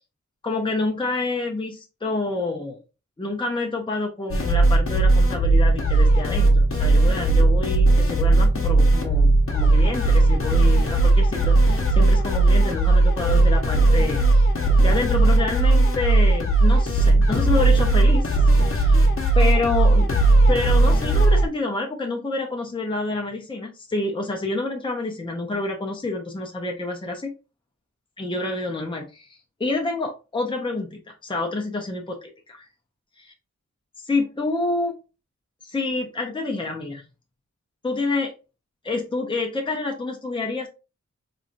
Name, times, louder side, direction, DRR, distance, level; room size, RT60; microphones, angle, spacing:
voice 1, 0.4-2.8 3.2-14.5 14.8-18.3 18.7-19.0 19.3-20.1 20.5-27.3 28.2-32.7 33.2-33.3 34.0-34.9 35.6-37.0 37.8-38.3 38.8-40.7, left 3 dB, 15° left, 1 dB, 0.7 m, -28 dB
sound 1, 4.3-21.5, right 2 dB, 45° left, 1.0 m, -17 dB
3.7 x 3.0 x 2.6 m, 0.30 s
wide cardioid pair, 60°, 30 cm